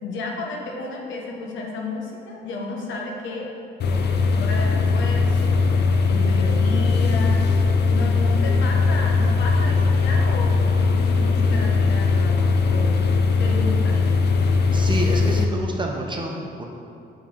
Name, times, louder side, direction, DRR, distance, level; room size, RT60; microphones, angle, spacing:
voice 1, 0.0-3.5 3.9-7.5 7.9-12.9 13.4-14.0, left 2 dB, 75° left, 0 dB, 0.9 m, -32 dB
sound 1, 3.8-15.4, left 4 dB, 60° left, 0.5 m, -19 dB
voice 2, 14.7-16.6, right 1 dB, 25° right, 0 dB, 0.9 m, -28 dB
5.8 x 4.6 x 3.7 m, 2.7 s
cardioid pair, 75°, 20 cm